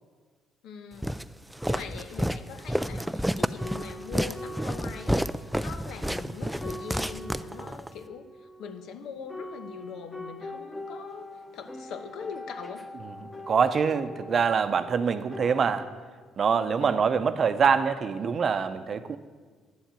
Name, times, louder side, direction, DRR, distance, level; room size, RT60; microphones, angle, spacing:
voice 1, 0.6-1.2 1.7-8.3 8.6-12.9 16.8-17.1, left 6 dB, 75° left, 8 dB, 1.0 m, -42 dB
Walk footsteps, 1.0-7.9, equal, ahead, 0.3 m, -30 dB
sound 1, 2.9-3.1 3.6-15.9, left 1 dB, 15° left, 1.3 m, -43 dB
voice 2, 13.5-16.0 16.4-19.2, right 6 dB, 40° right, 11 dB, 0.7 m, -25 dB
10.5 x 7.3 x 9.0 m, 1.5 s
cardioid pair, 120°, 0 cm